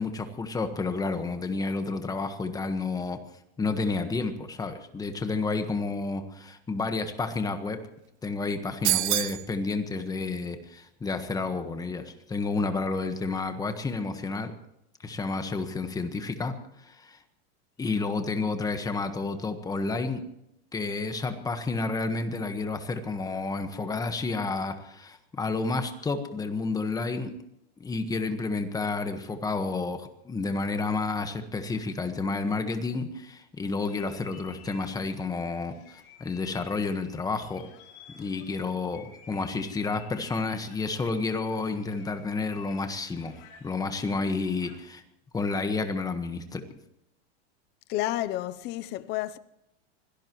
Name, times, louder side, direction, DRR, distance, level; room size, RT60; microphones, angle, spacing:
voice 1, 0.0-3.2 3.6-7.8 8.2-14.5 15.0-17.2 17.8-20.2 20.7-27.3 27.8-37.7 38.1-45.0 45.3-46.6, left 3 dB, 10° left, 1.4 m, -30 dB
sound 1, 8.8-9.5, right 18 dB, 80° right, 0.6 m, -25 dB
sound 2, 33.8-45.0, left 7 dB, 50° left, 4.9 m, -53 dB
voice 2, 47.9-49.4, left 15 dB, 30° left, 0.7 m, -30 dB
25.0 x 17.5 x 3.1 m
supercardioid pair, 150°, 33 cm